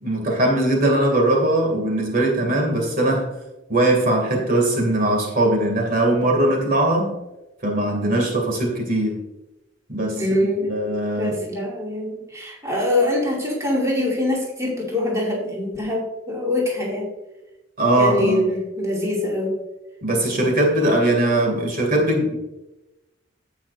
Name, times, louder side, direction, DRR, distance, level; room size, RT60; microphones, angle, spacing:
voice 1, 0.0-3.3 3.7-7.1 7.6-9.2 9.9-11.4 17.8-18.5 20.0-22.4, right 1 dB, 50° right, 1 dB, 2.5 m, -20 dB
voice 2, 10.2-10.7 11.1-17.1 18.0-19.6, left 1 dB, 15° right, -4 dB, 2.5 m, -24 dB
16.5 x 5.8 x 2.6 m, 0.97 s
head